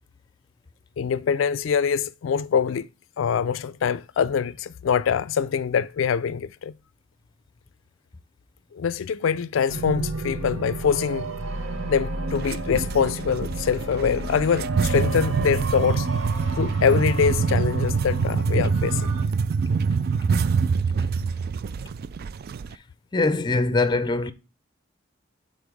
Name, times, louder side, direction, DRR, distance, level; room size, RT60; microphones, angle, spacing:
voice 1, 1.0-2.9 3.2-6.7 8.7-11.3 11.9-16.1 16.6-19.1, left 6 dB, 85° left, 0.4 m, -24 dB
sound 1, 9.7-19.2, right 2 dB, 85° right, 1.0 m, -32 dB
sound 2, 12.3-22.7, right 5 dB, 50° right, 0.3 m, -25 dB
voice 2, 23.1-24.3, left 3 dB, 25° left, 0.5 m, -22 dB
7.0 x 3.8 x 4.7 m
head